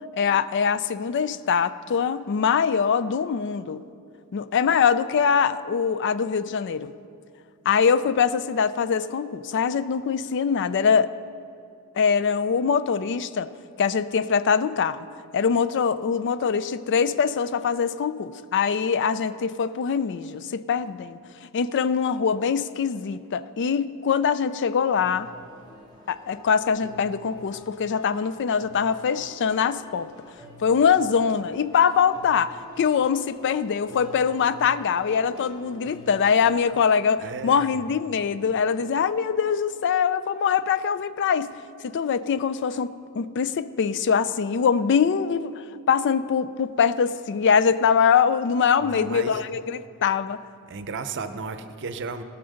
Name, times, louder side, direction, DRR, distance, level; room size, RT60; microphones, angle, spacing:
voice 1, 0.2-3.8 4.3-6.9 7.7-11.1 12.0-13.5 13.8-15.1 15.3-25.3 26.1-30.1 30.6-41.5 41.8-50.4, left 6 dB, 55° left, 15 dB, 0.4 m, -23 dB
sound 1, 24.8-36.8, right 1 dB, 20° left, 2.3 m, -48 dB
voice 2, 37.2-38.0 48.8-49.4 50.7-52.2, right 4 dB, 55° right, 10 dB, 0.7 m, -34 dB
16.0 x 5.9 x 6.4 m, 2.5 s
head